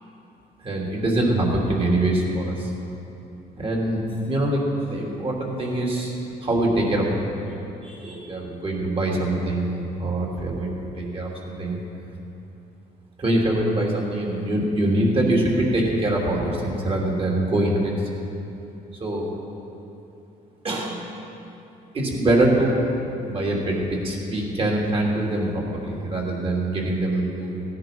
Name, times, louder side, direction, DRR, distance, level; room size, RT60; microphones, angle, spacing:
voice 1, 0.6-2.7 3.6-6.1 6.4-7.1 7.8-11.8 13.2-17.9 19.0-19.3 20.6-21.0 21.9-22.8 23.2-23.8 24.0-27.6, right 1 dB, 35° right, -2 dB, 3.0 m, -24 dB
16.0 x 10.5 x 5.3 m, 2.9 s
cardioid pair, 110°, 17 cm